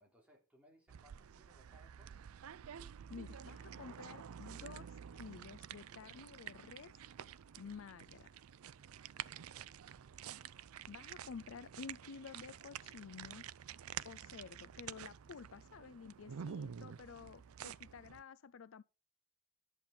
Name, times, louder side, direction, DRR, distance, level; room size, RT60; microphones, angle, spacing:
voice 1, 0.0-2.3, right 1 dB, 5° right, 3.2 m, -67 dB
sound 1, 0.9-18.2, right 8 dB, 75° right, 0.4 m, -50 dB
voice 2, 3.1-7.0 7.6-8.3 10.9-13.5 14.0-18.8, left 5 dB, 65° left, 0.4 m, -51 dB
11.0 x 7.4 x 5.3 m
head